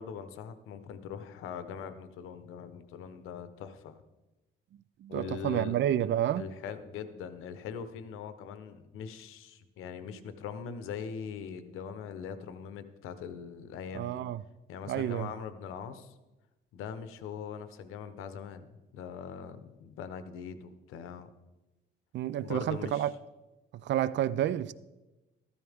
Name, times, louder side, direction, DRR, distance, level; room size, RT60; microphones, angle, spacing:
voice 1, 0.0-4.0 5.1-5.8 6.4-14.2 14.7-16.1 16.7-21.3 22.4-23.1, left 7 dB, 90° left, 1.0 m, -41 dB
voice 2, 5.0-6.5 13.9-14.4 14.9-15.3 22.1-23.1 23.8-24.7, right 11 dB, 60° right, 0.5 m, -29 dB
14.0 x 13.0 x 3.6 m
cardioid pair, 130°, 21 cm